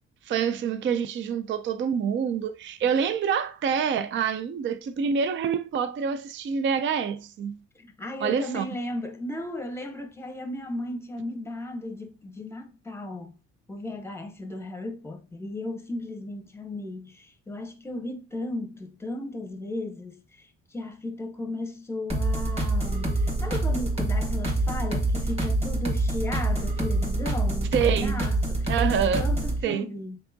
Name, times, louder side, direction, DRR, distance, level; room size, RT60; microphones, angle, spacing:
voice 1, 0.3-7.6 8.2-8.7 27.7-28.3 28.7-29.2 29.6-29.8, right 7 dB, 40° right, 0.4 m, -26 dB
voice 2, 7.8-13.4 13.7-30.2, left 1 dB, 10° left, 0.8 m, -35 dB
sound 1, 22.1-29.6, right 1 dB, 20° right, 1.6 m, -26 dB
4.6 x 3.7 x 2.6 m
cardioid pair, 90°, 30 cm